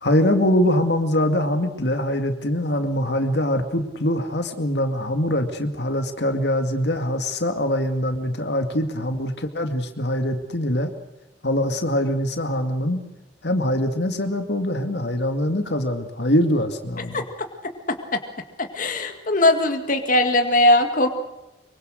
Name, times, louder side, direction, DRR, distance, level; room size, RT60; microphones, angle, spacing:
voice 1, 0.0-10.9 11.4-13.0 13.4-17.2, left 1 dB, 70° left, 6 dB, 2.2 m, -23 dB
voice 2, 18.6-21.1, left 1 dB, 50° left, 5 dB, 2.0 m, -19 dB
25.0 x 24.0 x 6.5 m, 0.97 s
head